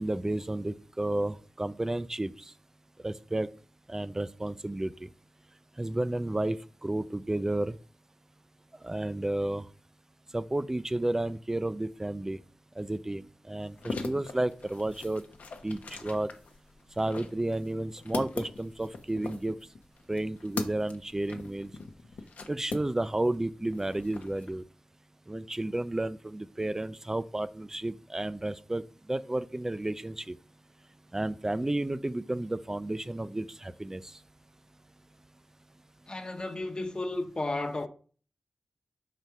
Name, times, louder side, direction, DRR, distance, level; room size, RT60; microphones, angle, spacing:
voice 1, 0.0-2.3 3.0-3.5 3.9-5.1 5.8-7.8 8.8-9.7 10.3-12.4 12.8-15.2 15.6-16.3 17.0-19.6 20.1-21.7 22.5-24.6 25.3-28.8 29.1-30.4 31.1-34.0, right 1 dB, 20° right, 0.4 m, -32 dB
sound 1, 13.6-23.3 23.6-24.5, left 4 dB, 85° left, 0.8 m, -40 dB
voice 2, 36.1-37.9, left 2 dB, 35° left, 0.9 m, -33 dB
5.4 x 4.2 x 4.6 m
cardioid pair, 65°, 3 cm